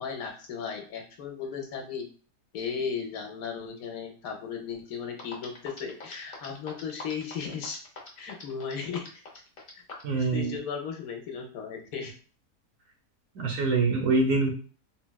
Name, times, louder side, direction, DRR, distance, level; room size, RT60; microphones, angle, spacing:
voice 1, 0.0-2.1 2.5-7.8 8.2-9.2 9.7-9.8 10.1-12.1, left 6 dB, 70° left, 3 dB, 1.0 m, -36 dB
sound 1, 4.9-5.0 5.2-10.1, left 3 dB, 50° left, 0.7 m, -43 dB
voice 2, 10.0-10.6 13.3-14.5, right 3 dB, 65° right, 1 dB, 0.9 m, -25 dB
3.9 x 2.1 x 2.2 m, 0.40 s
omnidirectional pair, 1.7 m